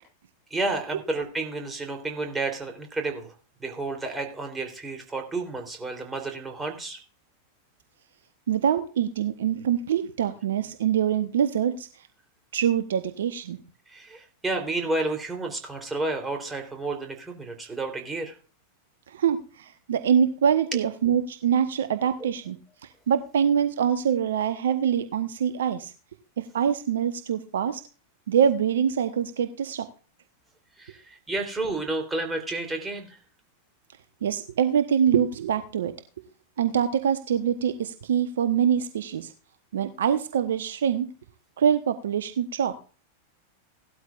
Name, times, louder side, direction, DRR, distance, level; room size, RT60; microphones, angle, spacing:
voice 1, 0.5-3.3 3.6-7.0 13.9-18.3 30.8-33.2, right 2 dB, 10° right, 3 dB, 3.4 m, -31 dB
voice 2, 8.5-11.9 12.5-13.6 19.1-22.6 23.1-25.9 26.4-27.8 28.3-29.9 34.2-35.9 36.6-39.3 39.7-41.1 41.6-42.8, right 8 dB, 60° right, 10 dB, 0.9 m, -24 dB
17.0 x 12.5 x 2.5 m, 0.37 s
figure-of-eight pair, 90°, 0 cm